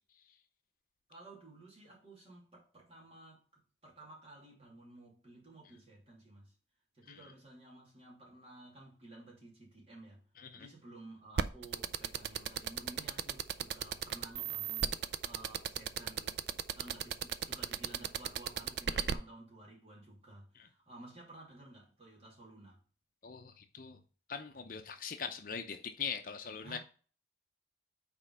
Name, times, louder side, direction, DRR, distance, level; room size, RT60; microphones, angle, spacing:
voice 1, 1.1-6.5 6.9-10.2 10.5-16.4 16.7-22.8 26.6-26.8, right 2 dB, 35° right, 2.7 m, -54 dB
voice 2, 10.4-10.7 18.9-19.1 20.5-20.7 23.2-24.0 24.3-26.8, left 6 dB, 50° left, 0.6 m, -42 dB
sound 1, 11.4-19.1, right 8 dB, 65° right, 0.4 m, -34 dB
5.2 x 4.4 x 5.4 m
head